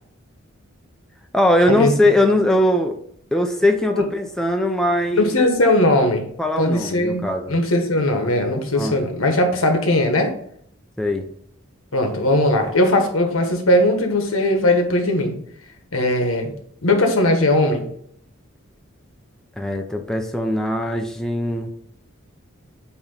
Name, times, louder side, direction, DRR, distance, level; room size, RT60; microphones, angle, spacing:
voice 1, 1.3-3.0 3.3-5.3 6.4-7.6 8.7-9.0 11.0-11.3 19.6-21.7, left 1 dB, 5° left, 3 dB, 0.6 m, -20 dB
voice 2, 5.1-6.3 6.6-10.3 11.9-15.3 15.9-16.5 16.8-17.8, left 1 dB, 85° left, 4 dB, 1.5 m, -19 dB
8.7 x 3.1 x 5.5 m, 0.66 s
head